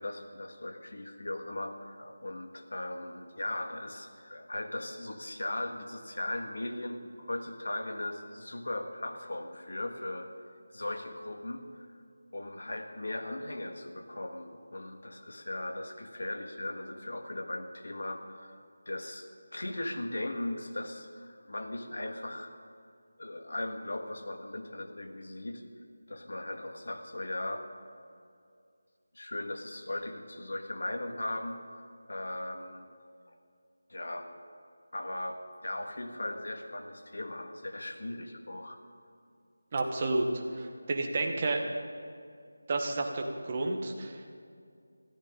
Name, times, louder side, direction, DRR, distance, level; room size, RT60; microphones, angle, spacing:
voice 1, 0.0-10.3 10.7-11.9 12.3-22.6 23.2-25.6 26.1-27.7 29.1-31.6 32.1-32.9 33.3-33.4 33.9-34.3 34.9-38.8, left 1 dB, 70° left, 5 dB, 1.8 m, -38 dB
voice 2, 39.7-41.6 42.7-44.4, right 2 dB, 25° right, 2 dB, 1.2 m, -31 dB
21.0 x 14.5 x 3.8 m, 2.3 s
figure-of-eight pair, 175°, 0 cm